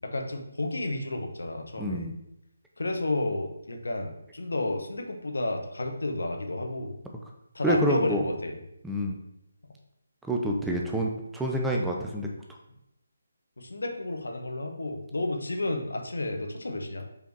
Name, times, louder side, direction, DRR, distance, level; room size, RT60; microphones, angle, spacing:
voice 1, 0.0-2.1 2.8-6.9 7.5-8.6 13.6-17.0, left 2 dB, 65° left, 4 dB, 1.1 m, -31 dB
voice 2, 1.8-2.2 7.6-8.2 8.8-9.2 10.3-12.3, right 1 dB, 5° right, -1 dB, 0.6 m, -27 dB
5.5 x 4.3 x 4.6 m, 0.83 s
figure-of-eight pair, 150°, 0 cm